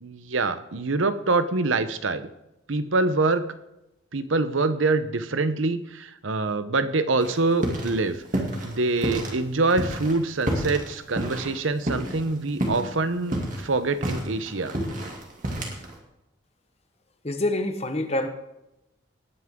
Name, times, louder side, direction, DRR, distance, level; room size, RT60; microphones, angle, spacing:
voice 1, 0.0-2.3 2.7-3.4 4.1-8.2 8.6-14.7, right 3 dB, 75° right, 12 dB, 0.9 m, -25 dB
sound 1, 7.2-8.0 8.2-9.3 9.7-12.3 12.6-12.9 13.2-15.9, right 1 dB, 40° right, 2.5 m, -29 dB
voice 2, 17.2-18.3, left 1 dB, 30° left, 8 dB, 1.1 m, -26 dB
19.0 x 9.6 x 3.7 m, 0.89 s
head